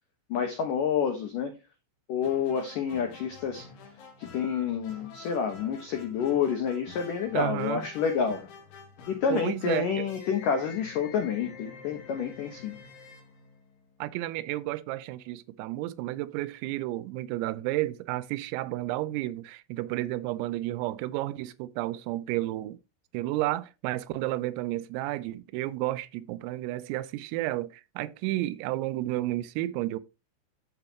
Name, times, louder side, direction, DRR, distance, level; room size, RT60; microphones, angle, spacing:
voice 1, 0.3-1.5 2.1-3.7 4.2-8.4 9.1-12.7, left 7 dB, 85° left, 1.8 m, -28 dB
sound 1, 2.2-14.1, left 5 dB, 70° left, 4.4 m, -48 dB
voice 2, 7.3-7.8 9.3-10.1 14.0-22.8 23.1-30.0, right 16 dB, 85° right, 3.4 m, -32 dB
11.5 x 7.0 x 2.9 m
omnidirectional pair, 5.9 m